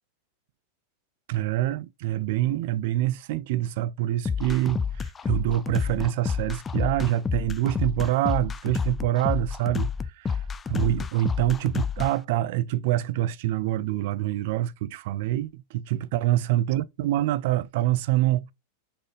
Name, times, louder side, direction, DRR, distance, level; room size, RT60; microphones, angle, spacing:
voice 1, 1.3-9.9 10.2-10.4 10.7-18.5, right 14 dB, 65° right, 0.4 m, -26 dB
sound 1, 4.3-12.1, left 6 dB, 20° left, 0.3 m, -29 dB
4.1 x 3.4 x 3.8 m
supercardioid pair, 130°, 0 cm